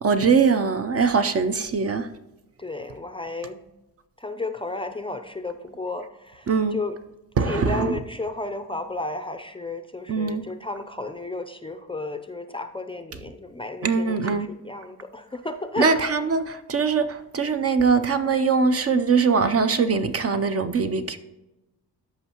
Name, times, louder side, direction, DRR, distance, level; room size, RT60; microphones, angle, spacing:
voice 1, 0.0-2.1 6.5-6.8 7.4-8.0 10.1-10.5 13.8-14.5 15.8-21.2, right 5 dB, 35° right, 9 dB, 0.5 m, -22 dB
voice 2, 2.6-3.6 4.2-7.0 7.4-15.9, left 2 dB, 15° left, 7 dB, 0.5 m, -33 dB
13.5 x 5.5 x 2.9 m, 0.98 s
cardioid pair, 95°, 40 cm